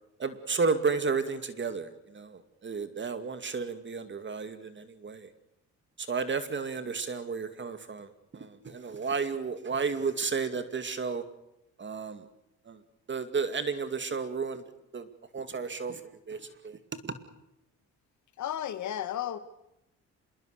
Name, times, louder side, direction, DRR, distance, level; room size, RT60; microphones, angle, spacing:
voice 1, 0.2-5.3 6.0-11.2 11.8-12.3 12.7-12.8 13.1-14.6 14.9-15.1 15.3-16.0 16.3-17.2, right 5 dB, 40° right, 10 dB, 2.3 m, -32 dB
voice 2, 18.4-19.4, left 11 dB, 70° left, 11 dB, 2.1 m, -33 dB
26.5 x 22.0 x 6.7 m, 0.84 s
cardioid pair, 90°, 30 cm